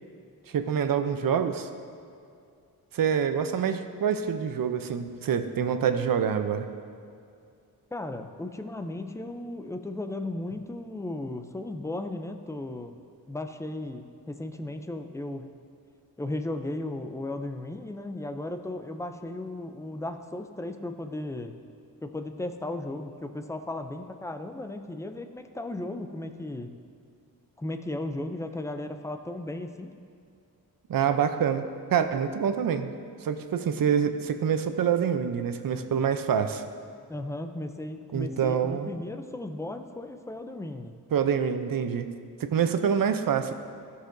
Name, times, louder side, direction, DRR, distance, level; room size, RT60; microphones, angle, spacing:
voice 1, 0.5-1.7 2.9-6.7 30.9-31.7 31.9-32.9 33.2-36.6 38.1-38.9 41.1-42.1 42.4-43.5, right 7 dB, 65° right, 9 dB, 0.6 m, -26 dB
voice 2, 7.9-12.9 13.3-15.5 16.2-21.5 22.0-26.7 27.6-29.9 37.1-40.9, left 2 dB, 10° left, 7 dB, 0.4 m, -35 dB
14.5 x 6.6 x 2.6 m, 2.4 s
wide cardioid pair, 120°, 37 cm